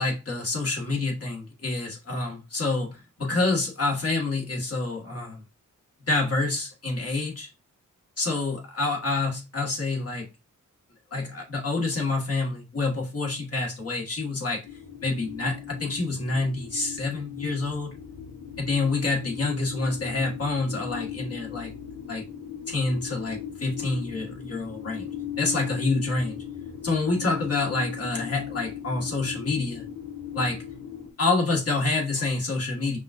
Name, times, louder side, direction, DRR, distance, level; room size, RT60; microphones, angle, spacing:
voice 1, 0.0-5.4 6.1-7.5 8.2-10.3 11.1-14.6 15.0-18.0 18.6-21.7 22.1-22.2 22.7-25.1 25.4-26.4 26.8-29.8 30.3-30.6 31.2-33.0, left 3 dB, 45° left, 1.6 m, -27 dB
sound 1, 14.6-31.1, left 8 dB, 65° left, 1.4 m, -38 dB
5.4 x 2.4 x 2.5 m
cardioid pair, 70°, 32 cm